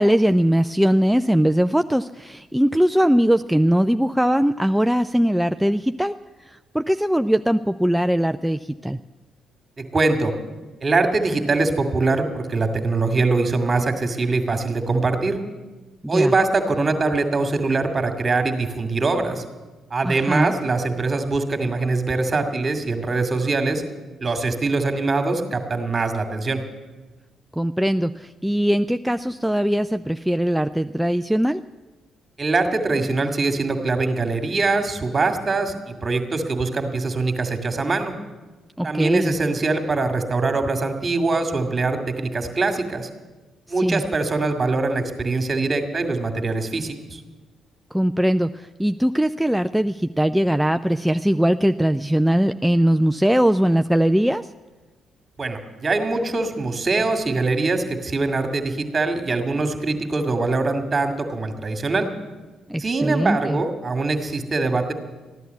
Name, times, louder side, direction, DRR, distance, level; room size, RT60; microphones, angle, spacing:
voice 1, 0.0-6.2 6.5-9.0 16.0-16.3 20.0-20.6 27.6-31.6 38.8-39.3 43.8-44.0 47.9-54.5 62.7-63.6, equal, 5° right, 9 dB, 0.4 m, -20 dB
voice 2, 9.8-10.3 10.8-15.4 16.1-19.4 19.9-23.8 24.2-26.6 32.4-38.1 38.8-43.1 43.7-47.2 55.4-62.1 62.8-64.9, right 3 dB, 35° right, 7 dB, 2.1 m, -23 dB
14.5 x 11.5 x 8.1 m, 1.2 s
hypercardioid pair, 45°, 0 cm